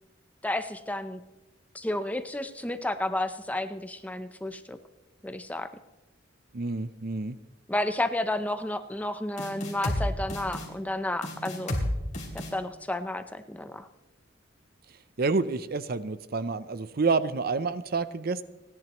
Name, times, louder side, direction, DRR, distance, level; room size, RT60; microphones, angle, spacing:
voice 1, 0.4-1.2 1.7-4.8 5.2-5.7 7.7-11.8 12.5-13.9, left 1 dB, 10° left, 9 dB, 0.7 m, -31 dB
voice 2, 6.5-7.4 15.2-18.4, right 4 dB, 50° right, 14 dB, 0.6 m, -28 dB
sound 1, 9.4-10.0 10.3-10.7 11.2-11.9 12.1-12.5, left 1 dB, 40° left, 3.2 m, -31 dB
29.5 x 11.0 x 3.1 m, 1.1 s
head